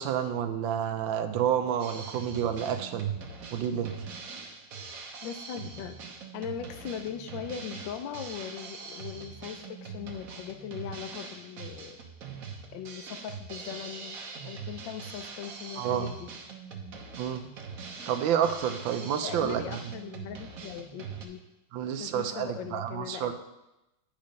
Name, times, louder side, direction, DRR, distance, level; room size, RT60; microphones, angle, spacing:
voice 1, 0.0-3.2 3.5-4.0 15.8-16.1 17.2-17.4 18.1-19.8 21.7-23.3, right 9 dB, 90° right, 8 dB, 1.4 m, -29 dB
Drum kit, 1.8-21.2, right 5 dB, 55° right, 1.3 m, -43 dB
voice 2, 5.2-6.0 6.3-12.0 12.7-14.2 14.4-16.3 19.2-21.4 22.0-23.3, left 8 dB, 85° left, 8 dB, 1.4 m, -39 dB
8.9 x 5.3 x 5.3 m, 0.96 s
omnidirectional pair, 2.0 m